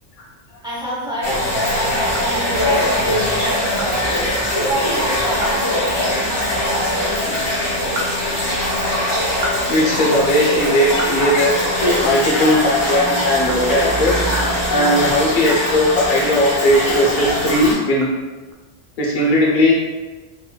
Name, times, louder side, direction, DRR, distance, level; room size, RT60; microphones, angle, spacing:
voice 1, 0.6-7.4, right 1 dB, 5° right, -8 dB, 0.6 m, -28 dB
sound 1, 1.2-17.7, left 1 dB, 70° left, 1.9 m, -21 dB
sound 2, 2.1-2.9 3.3-3.4 3.8-3.9 4.3-4.4 4.8-4.9 5.3-5.7 5.9-6.1 7.6-8.8 9.2-12.1 12.4-12.6 13.0-16.5 16.9-18.5, right 1 dB, 90° right, 1.0 m, -34 dB
voice 2, 9.7-11.6 12.0-14.2 14.7-18.1 19.0-19.7, left 1 dB, 50° left, -3 dB, 0.7 m, -17 dB
sound 3, 10.6-17.5, right 1 dB, 60° right, 0.7 m, -35 dB
3.9 x 2.1 x 2.3 m, 1.2 s
omnidirectional pair, 1.2 m